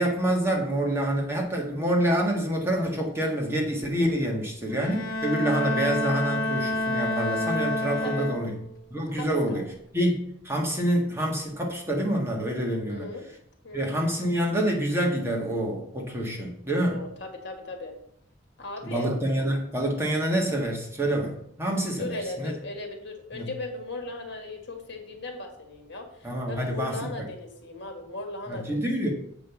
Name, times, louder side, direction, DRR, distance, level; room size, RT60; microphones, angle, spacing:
voice 1, 0.0-8.5 8.9-9.6 9.9-13.1 13.7-17.0 18.8-22.5 23.3-23.5 26.2-27.1 28.5-29.1, right 1 dB, 10° right, 0 dB, 1.5 m, -27 dB
Bowed string instrument, 4.7-8.8, left 1 dB, 90° left, 0.8 m, -28 dB
voice 2, 9.2-9.6 12.9-13.3 13.6-13.9 16.8-17.9 18.6-19.1 22.0-29.1, left 2 dB, 55° left, 4 dB, 1.9 m, -37 dB
7.6 x 5.4 x 7.0 m, 0.70 s
head